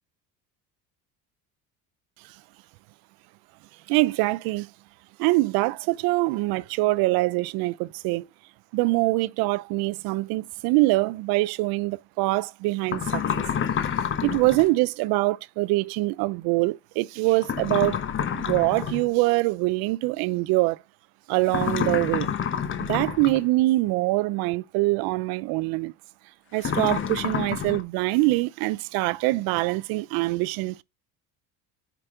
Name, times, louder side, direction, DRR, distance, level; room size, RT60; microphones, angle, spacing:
voice 1, 3.9-4.7 5.2-8.3 8.7-13.5 14.2-18.0 18.3-20.8 21.3-22.3 22.8-25.9 26.5-30.8, right 21 dB, 75° right, 0.6 m, -24 dB
sound 1, 12.9-14.7 17.4-19.1 21.5-23.4 26.6-27.8, left 8 dB, 35° left, 1.0 m, -28 dB
9.1 x 5.3 x 3.6 m
cardioid pair, 135°, 36 cm